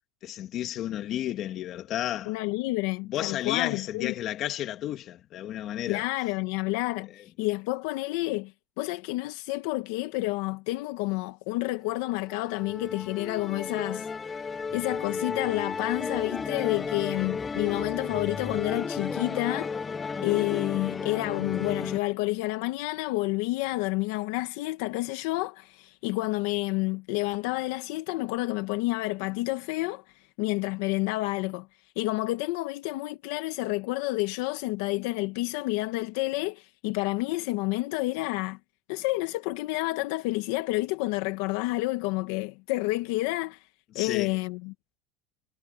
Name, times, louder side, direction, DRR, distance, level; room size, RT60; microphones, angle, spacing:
voice 1, 0.2-2.3 3.0-6.1 43.9-44.4, left 12 dB, 40° left, 2.4 m, -32 dB
voice 2, 2.3-4.1 5.9-8.5 8.8-14.1 14.7-19.8 20.2-30.0 30.4-31.7 32.0-38.6 38.9-43.6 43.9-45.0, left 20 dB, 70° left, 1.4 m, -29 dB
Musical instrument, 11.9-22.0, left 5 dB, 15° left, 0.6 m, -33 dB
supercardioid pair, 145°, 0 cm